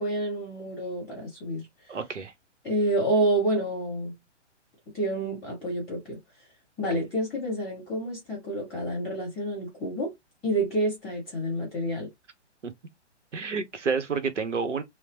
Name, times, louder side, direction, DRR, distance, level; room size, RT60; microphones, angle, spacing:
voice 1, 0.0-1.6 2.6-4.1 4.9-6.2 6.8-10.1 10.4-12.1, right 1 dB, ahead, 0.3 m, -28 dB
voice 2, 1.9-2.3 12.6-12.7 13.3-14.8, right 5 dB, 85° right, 0.7 m, -29 dB
2.9 x 2.0 x 2.7 m
figure-of-eight pair, 125°, 35 cm